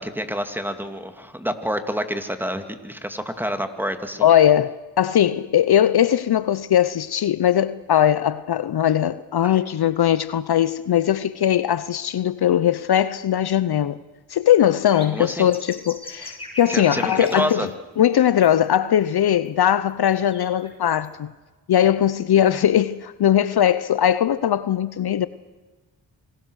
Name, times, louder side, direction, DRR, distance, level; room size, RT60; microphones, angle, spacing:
voice 1, 0.0-4.3 9.4-9.5 15.1-15.5 16.7-17.7, equal, 5° right, 2.4 m, -28 dB
voice 2, 4.2-14.0 14.3-17.7 18.0-21.3 21.7-25.3, left 10 dB, 60° left, 0.8 m, -20 dB
sound 1, 14.9-17.7 18.1-18.5 18.7-18.8 19.5-19.6 20.0-21.1, left 2 dB, 10° left, 7.2 m, -38 dB
26.5 x 19.5 x 6.5 m
supercardioid pair, 55°, 44 cm